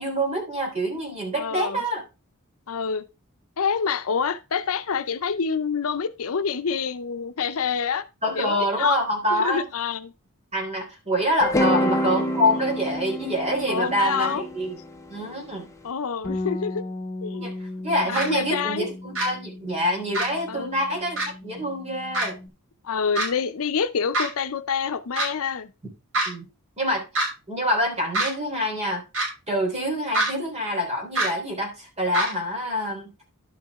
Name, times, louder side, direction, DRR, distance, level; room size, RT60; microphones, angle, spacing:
voice 1, 0.0-2.0 8.2-9.6 10.5-14.8 15.1-15.7 17.3-22.4 25.8-25.9 26.3-26.5 26.8-27.0 27.5-29.0 29.5-33.1, equal, 30° right, 3.6 m, -26 dB
voice 2, 1.3-1.8 2.7-3.1 3.6-8.0 8.4-9.0 9.4-10.1 13.7-14.4 15.8-16.8 17.2-17.5 18.1-18.9 20.5-20.8 22.8-25.7, left 6 dB, 70° left, 0.6 m, -27 dB
sound 1, 11.4-15.6, left 1 dB, 15° left, 0.9 m, -27 dB
Bass guitar, 16.2-22.5, left 2 dB, 35° left, 2.6 m, -36 dB
sound 2, 18.1-18.2 19.1-19.3 20.1-20.3 21.2-21.3 22.1-22.3 23.1-23.3 24.1-24.3 25.2-25.3 26.1-26.3 27.1-27.3 28.1-28.3 29.1-29.3 30.1-30.3 31.1-31.3 32.1-32.3, right 2 dB, 65° right, 5.7 m, -23 dB
11.5 x 6.0 x 3.6 m
head